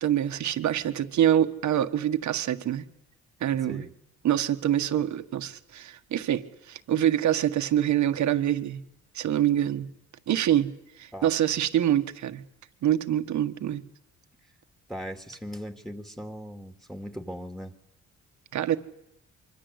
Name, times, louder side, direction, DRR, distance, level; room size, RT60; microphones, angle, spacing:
voice 1, 0.0-2.8 3.4-3.9 4.2-8.8 9.1-9.9 10.3-10.7 11.0-12.4 12.8-13.8 18.5-18.8, right 11 dB, 70° right, 9 dB, 1.6 m, -25 dB
voice 2, 3.5-3.9 11.1-11.3 14.9-17.7, equal, ahead, 6 dB, 2.4 m, -39 dB
25.0 x 24.5 x 8.2 m, 0.81 s
cardioid pair, 90°, 30 cm